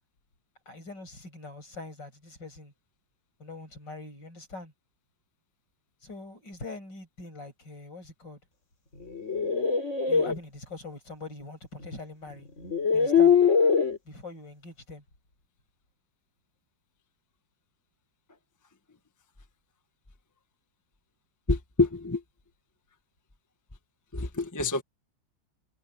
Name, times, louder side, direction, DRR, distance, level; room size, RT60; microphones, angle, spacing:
voice 1, 0.7-2.7 3.4-4.7 6.0-8.4 10.1-12.5 12.9-13.3 14.0-15.0, left 3 dB, 60° left, 8.2 m, -43 dB
sound 1, 9.0-10.3 11.8-11.9 12.6-14.0, left 6 dB, 35° left, 3.6 m, -22 dB
voice 2, 21.5-22.2 24.1-24.8, left 3 dB, 10° left, 1.1 m, -26 dB
omnidirectional pair, 2.2 m